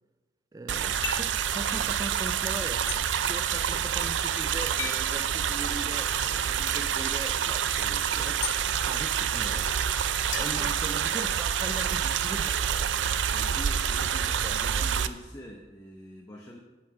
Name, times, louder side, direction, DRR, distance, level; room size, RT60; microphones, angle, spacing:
voice 1, 0.5-8.4 8.7-9.7 10.3-12.9 14.0-14.1 14.4-14.9, right 2 dB, 20° right, 0.3 m, -40 dB
sound 1, 0.7-15.1, right 8 dB, 90° right, 0.5 m, -28 dB
sound 2, 1.0-1.4 2.9-3.0 4.8-5.1 6.7-6.8 8.4-8.6 10.3-11.4, left 8 dB, 90° left, 0.8 m, -36 dB
voice 2, 13.3-16.6, equal, 20° left, 0.8 m, -45 dB
11.0 x 6.1 x 4.8 m
head